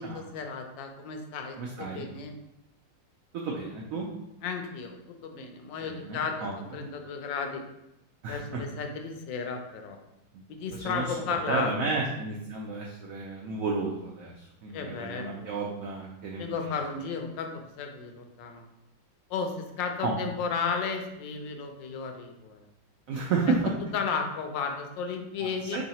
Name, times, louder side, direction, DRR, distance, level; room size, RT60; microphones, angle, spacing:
voice 1, 0.0-2.3 4.4-7.6 8.3-10.0 10.5-11.9 14.7-15.5 16.4-18.6 19.3-22.6 23.3-23.4 23.9-25.8, left 5 dB, 80° left, 5 dB, 1.3 m, -34 dB
voice 2, 1.6-2.1 3.3-4.1 5.8-6.8 8.2-8.6 10.3-10.4 10.7-11.1 11.5-16.7 20.0-20.2 23.1-23.7 25.4-25.8, right 4 dB, 90° right, -1 dB, 0.7 m, -32 dB
3.2 x 2.7 x 4.1 m, 0.89 s
omnidirectional pair, 2.0 m